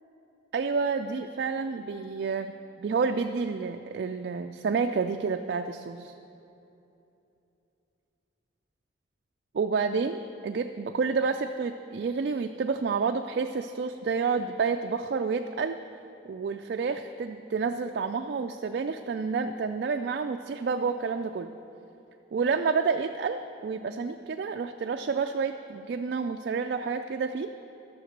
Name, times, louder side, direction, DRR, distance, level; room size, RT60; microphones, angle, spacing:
voice 1, 0.5-6.1 9.5-15.8 16.3-21.5 22.3-27.5, right 5 dB, 55° right, 5 dB, 0.3 m, -29 dB
12.0 x 6.8 x 6.5 m, 2.9 s
head